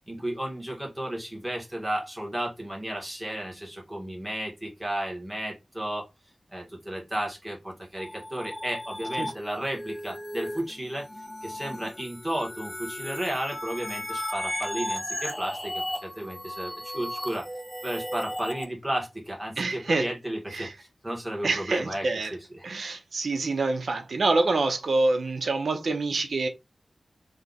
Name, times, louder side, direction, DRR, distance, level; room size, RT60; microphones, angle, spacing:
voice 1, 0.1-6.1 6.5-11.1 11.4-17.5 17.8-22.1 22.3-22.6, right 1 dB, 10° right, 1.8 m, -33 dB
sound 1, 8.0-18.6, equal, 5° left, 1.0 m, -35 dB
voice 2, 19.6-20.1 20.5-20.7 21.4-22.3 22.6-26.5, right 3 dB, 85° right, 0.7 m, -26 dB
3.3 x 2.8 x 4.0 m
wide cardioid pair, 105°, 0 cm